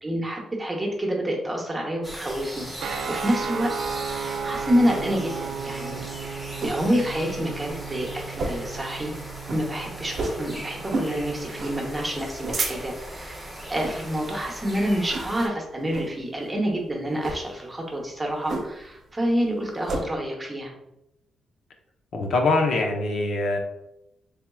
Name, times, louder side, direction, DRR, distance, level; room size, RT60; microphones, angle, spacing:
voice 1, 0.0-2.7 3.1-3.7 4.1-9.1 9.5-20.7, equal, 15° right, 0 dB, 0.9 m, -28 dB
sound 1, 2.0-15.5, equal, ahead, 1.1 m, -39 dB
sound 2, 2.8-11.8, right 6 dB, 70° right, 0.4 m, -35 dB
sound 3, 5.7-6.9 7.3-7.4 7.6-7.9 8.3-8.8 9.1-9.2 9.4-9.7 10.1-10.4 10.9-11.2 11.6-11.8 12.2-13.1 13.7-14.0 14.4-14.7 15.1-15.5 15.9-16.1 17.1-17.4 18.5-18.9 19.2-20.0, right 2 dB, 55° right, 0.7 m, -30 dB
voice 2, 22.1-23.6, left 2 dB, 65° left, 2 dB, 0.7 m, -23 dB
4.3 x 3.4 x 2.3 m, 0.86 s
cardioid pair, 115°, 0 cm